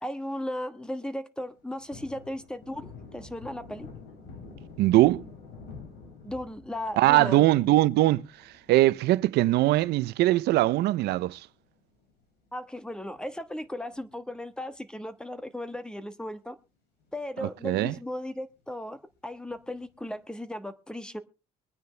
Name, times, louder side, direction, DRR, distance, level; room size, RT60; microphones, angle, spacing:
voice 1, 0.0-3.9 6.2-7.5 12.5-16.6 17.1-19.0 19.2-21.2, left 1 dB, 5° left, 1.2 m, -36 dB
Thunder, 1.5-12.2 12.6-12.7 13.1-14.6 14.8-15.0 15.3-16.2 16.6-16.7 17.0-17.1 19.5-20.0, left 4 dB, 80° left, 5.6 m, -49 dB
voice 2, 4.8-5.2 7.0-8.2 8.7-11.4 17.4-17.9, right 16 dB, 80° right, 0.6 m, -21 dB
23.0 x 9.4 x 3.3 m
cardioid pair, 110°, 17 cm